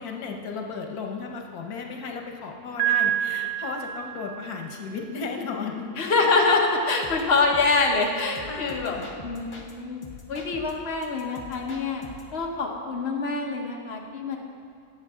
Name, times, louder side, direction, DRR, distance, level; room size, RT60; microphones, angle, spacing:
voice 1, 0.0-6.1 6.9-7.0 8.0-9.1, left 4 dB, 90° left, 2 dB, 1.5 m, -35 dB
Piano, 2.8-4.7, right 11 dB, 70° right, 1.4 m, -27 dB
voice 2, 6.0-12.0 12.3-14.4, left 3 dB, 45° left, 0 dB, 1.4 m, -25 dB
sound 1, 7.0-9.7 10.0-12.4, left 3 dB, 25° left, 0.8 m, -44 dB
18.5 x 7.2 x 3.7 m, 2.4 s
omnidirectional pair, 1.6 m